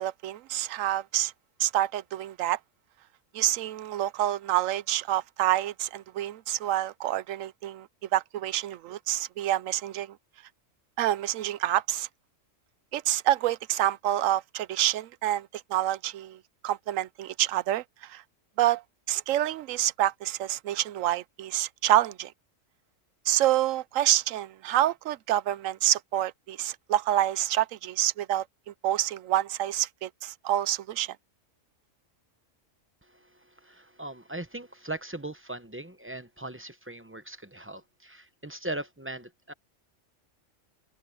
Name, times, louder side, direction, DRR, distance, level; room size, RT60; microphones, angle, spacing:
voice 1, 0.0-1.3 1.6-2.6 3.3-7.9 8.1-10.2 11.0-12.1 12.9-18.2 18.6-18.8 19.1-22.3 23.3-28.5 28.8-31.2, right 13 dB, 85° right, 1.0 m, -27 dB
voice 2, 33.0-39.5, right 2 dB, 15° right, 0.7 m, -39 dB
omnidirectional pair, 1.3 m